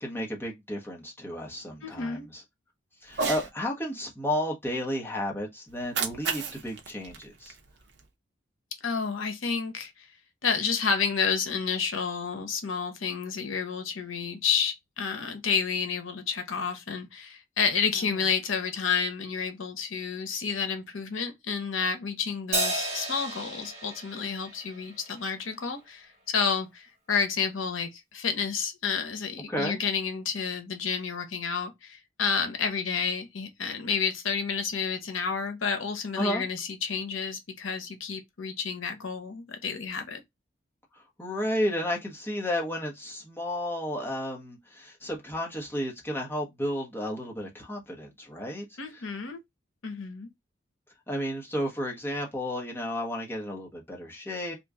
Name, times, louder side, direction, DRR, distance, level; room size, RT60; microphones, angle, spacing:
voice 1, 0.0-2.4 3.0-7.6 17.9-18.2 29.5-29.8 36.2-36.4 40.9-48.6 48.9-49.0 51.1-54.5, equal, 10° left, 0.9 m, -32 dB
voice 2, 1.8-2.3 8.8-10.1 10.4-40.2 48.8-49.4 49.8-50.3, left 6 dB, 85° left, 0.8 m, -30 dB
Cat, 3.1-3.5 5.7-8.1, right 5 dB, 55° right, 0.6 m, -33 dB
Crash cymbal, 22.5-25.2, right 1 dB, 35° right, 1.2 m, -32 dB
2.9 x 2.4 x 3.5 m
head